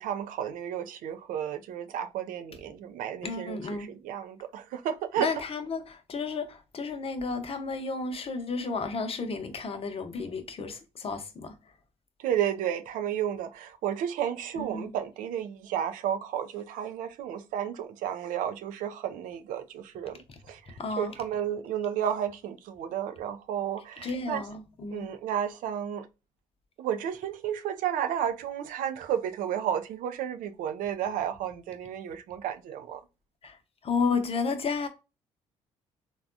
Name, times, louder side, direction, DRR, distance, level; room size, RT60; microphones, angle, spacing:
voice 1, 0.0-5.3 12.2-24.4 24.9-26.1 26.8-33.0, right 9 dB, 70° right, 0.4 m, -32 dB
voice 2, 3.2-3.9 5.2-11.5 14.6-14.9 20.8-21.1 24.0-25.1 33.4-33.6 33.8-34.9, left 4 dB, 40° left, 0.8 m, -32 dB
3.4 x 2.3 x 2.5 m
hypercardioid pair, 55°, 14 cm